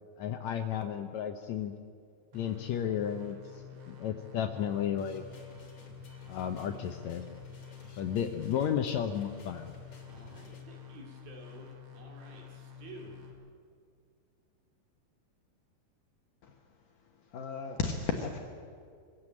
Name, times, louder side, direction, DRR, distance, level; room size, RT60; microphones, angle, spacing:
voice 1, 0.2-1.7 2.3-5.2 6.3-7.2 8.0-9.7, left 9 dB, 85° left, 7 dB, 1.6 m, -33 dB
sound 1, 2.3-13.3, left 8 dB, 50° right, 3.7 m, -49 dB
sound 2, 5.0-10.6, left 1 dB, 45° left, 2.9 m, -54 dB
voice 2, 10.1-13.2, right 3 dB, 70° right, 0 dB, 4.2 m, -51 dB
voice 3, 17.3-18.4, left 5 dB, 65° left, 3 dB, 2.6 m, -33 dB
23.5 x 16.0 x 8.7 m, 2.2 s
omnidirectional pair, 4.3 m